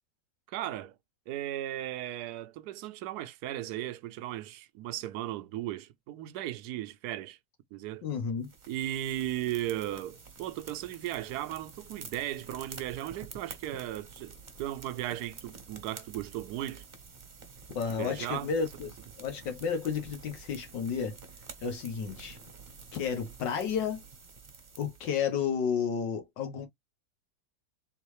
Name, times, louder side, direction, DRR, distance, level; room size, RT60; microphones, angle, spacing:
voice 1, 0.5-0.9 1.3-7.4 7.7-8.1 8.7-16.9 18.0-18.5, right 13 dB, 70° right, 1.0 m, -36 dB
voice 2, 8.0-8.5 17.8-18.9 19.2-21.2 21.6-22.4 22.9-24.0 24.8-26.7, left 6 dB, 75° left, 1.8 m, -32 dB
sound 1, 8.4-25.2, right 5 dB, 35° right, 0.9 m, -49 dB
3.8 x 3.7 x 3.1 m
omnidirectional pair, 2.0 m